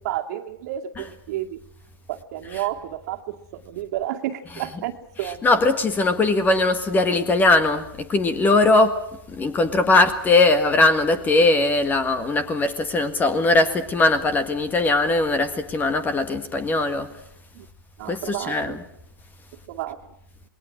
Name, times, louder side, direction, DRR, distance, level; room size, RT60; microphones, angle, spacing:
voice 1, 0.0-1.6 2.1-5.5 17.5-17.6 18.0-18.8 19.7-20.0, right 13 dB, 50° right, 2.3 m, -31 dB
voice 2, 5.2-17.1 18.1-18.8, left 2 dB, 15° left, 1.7 m, -20 dB
27.5 x 21.0 x 6.3 m
hypercardioid pair, 125°, 12 cm